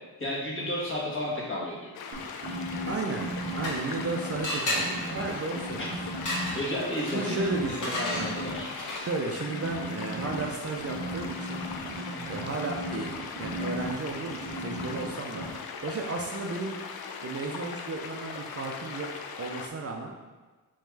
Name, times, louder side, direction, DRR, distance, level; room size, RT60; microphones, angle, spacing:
voice 1, 0.2-1.9 5.8-5.9 6.5-7.4 7.7-8.7 12.0-12.4, left 1 dB, 30° left, -5 dB, 1.5 m, -33 dB
sound 1, 1.9-19.7, left 5 dB, 70° left, 0.5 m, -40 dB
sound 2, 2.1-4.4 4.7-6.8 7.1-8.6 9.4-15.1 15.3-15.5, right 1 dB, 90° right, 0.7 m, -36 dB
voice 2, 2.9-5.9 7.1-8.3 9.0-11.6 12.3-13.1 13.4-16.8 17.2-19.1 19.4-20.1, right 3 dB, 40° right, 1 dB, 0.5 m, -34 dB
sound 3, 3.1-4.1 4.4-9.3, left 1 dB, 50° left, 1.4 m, -34 dB
3.6 x 3.3 x 3.2 m, 1.3 s
cardioid pair, 55°, 38 cm